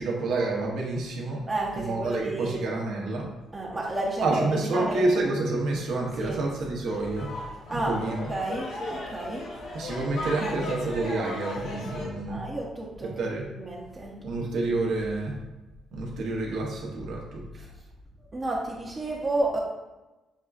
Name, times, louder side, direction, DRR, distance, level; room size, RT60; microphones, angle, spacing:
voice 1, 0.0-1.4 1.7-3.3 4.2-7.3 7.7-8.2 9.7-12.4 13.0-13.5 14.2-15.4 15.9-17.4, right 2 dB, 75° right, -1 dB, 0.8 m, -28 dB
voice 2, 1.5-2.6 3.5-5.0 6.2-6.4 7.7-8.0 8.3-9.5 12.3-13.1 13.5-14.2 17.5-17.7 18.3-19.6, right 2 dB, 30° right, -3 dB, 0.6 m, -31 dB
sound 1, 6.9-12.1, left 2 dB, 85° left, 0.9 m, -36 dB
6.3 x 2.3 x 2.4 m, 1.1 s
cardioid pair, 90°, 0 cm